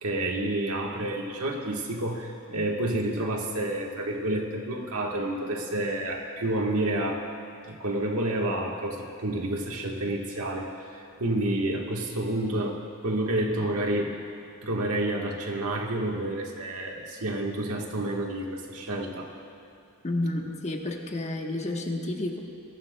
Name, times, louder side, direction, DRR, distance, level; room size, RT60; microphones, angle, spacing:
voice 1, 0.0-7.3 7.7-14.1 14.6-19.3, right 1 dB, 80° right, 1 dB, 1.5 m, -29 dB
voice 2, 20.0-22.4, left 1 dB, 30° left, 2 dB, 1.1 m, -30 dB
22.0 x 14.0 x 2.3 m, 2.7 s
head